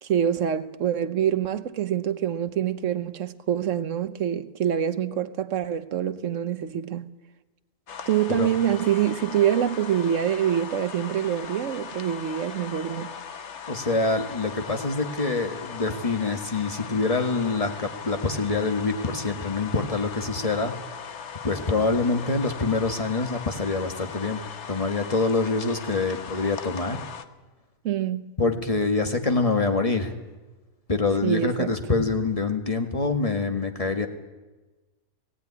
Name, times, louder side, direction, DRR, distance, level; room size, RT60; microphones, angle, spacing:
voice 1, 0.0-7.1 8.1-13.1 27.8-28.3 31.2-31.8, right 9 dB, 60° right, 1.2 m, -25 dB
sound 1, 7.9-27.2, left 7 dB, 55° left, 1.2 m, -39 dB
voice 2, 13.7-20.7 21.4-24.4 24.7-27.0 28.4-30.1 30.9-34.1, left 3 dB, 25° left, 1.7 m, -25 dB
18.5 x 17.0 x 9.7 m
omnidirectional pair, 1.5 m